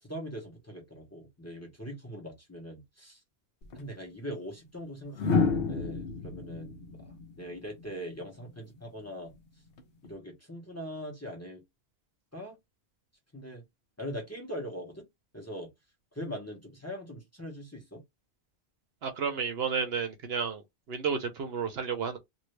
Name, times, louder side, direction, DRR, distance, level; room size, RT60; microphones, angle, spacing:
voice 1, 0.0-3.2 3.7-9.3 10.0-11.6 12.3-12.6 13.3-13.6 14.0-15.1 15.3-15.7 16.1-18.0, equal, 15° left, 1.0 m, -41 dB
sound 1, 3.6-3.8 5.1-8.2 9.8-10.1, left 4 dB, 65° left, 0.9 m, -30 dB
voice 2, 19.0-20.6 20.9-22.2, right 6 dB, 70° right, 1.0 m, -31 dB
2.7 x 2.6 x 3.2 m
omnidirectional pair, 1.1 m